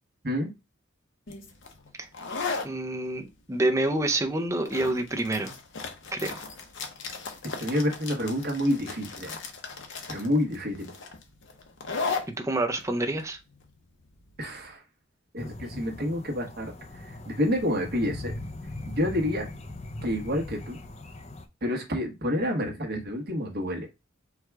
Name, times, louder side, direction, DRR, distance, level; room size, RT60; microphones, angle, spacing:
sound 1, 1.3-14.7, left 4 dB, 60° left, 0.8 m, -37 dB
voice 1, 2.6-5.5 6.1-6.4 12.4-13.4, right 2 dB, 15° right, 0.5 m, -27 dB
voice 2, 7.4-9.4 10.1-10.9 14.4-14.8 15.3-18.3 18.9-19.5 20.0-20.8 21.6-23.9, left 1 dB, 50° right, 1.2 m, -28 dB
sound 2, 15.4-21.5, left 2 dB, 35° left, 0.5 m, -40 dB
4.7 x 2.3 x 4.5 m
head